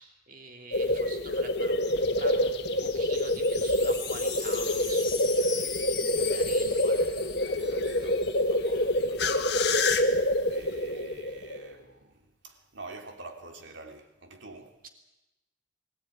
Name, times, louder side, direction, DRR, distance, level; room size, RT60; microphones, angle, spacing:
voice 1, 0.0-7.0 14.8-14.9, right 3 dB, 50° right, 3.0 m, -46 dB
sound 1, 0.7-11.7, left 1 dB, 60° left, 1.8 m, -27 dB
Wind chime, 3.2-8.4 8.7-8.8 9.0-9.4, left 6 dB, 25° left, 4.0 m, -38 dB
voice 2, 5.6-9.8 10.1-12.2 12.4-14.7, right 2 dB, 80° right, 3.1 m, -48 dB
22.5 x 16.0 x 9.7 m
head